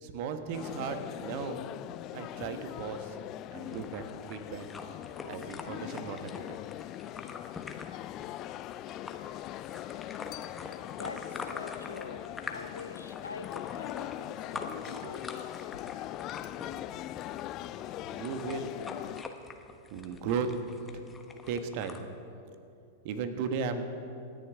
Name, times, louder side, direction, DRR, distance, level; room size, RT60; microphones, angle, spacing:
voice 1, 0.0-1.6 2.1-3.2 3.5-4.0 4.3-4.7 5.3-6.6 14.9-15.1 17.8-18.8 19.9-20.5 21.5-22.1 23.0-23.8, right 6 dB, 50° right, 8 dB, 1.3 m, -36 dB
sound 1, 0.5-19.2, left 14 dB, 40° left, 0.3 m, -41 dB
sound 2, 3.7-22.0, left 4 dB, 15° left, 1.1 m, -46 dB
voice 2, 11.0-16.3, left 3 dB, 85° left, 9 dB, 0.8 m, -45 dB
26.0 x 10.5 x 3.6 m, 2.6 s
figure-of-eight pair, 95°, 0 cm